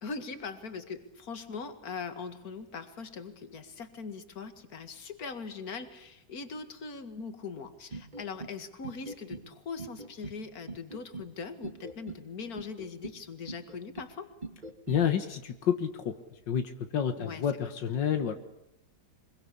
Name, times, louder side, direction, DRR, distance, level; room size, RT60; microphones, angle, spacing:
voice 1, 0.0-14.3 17.2-17.7, left 5 dB, 55° left, 9 dB, 2.4 m, -41 dB
sound 1, 7.9-8.6 8.8-9.5 9.8-10.4 10.7-11.3 11.6-12.2 12.6-13.2 13.5-14.1 14.4-15.1, right 3 dB, 25° right, 2.4 m, -41 dB
voice 2, 14.9-16.1 16.5-18.3, left 8 dB, 85° left, 8 dB, 2.0 m, -29 dB
25.0 x 23.0 x 8.5 m, 0.86 s
omnidirectional pair, 1.9 m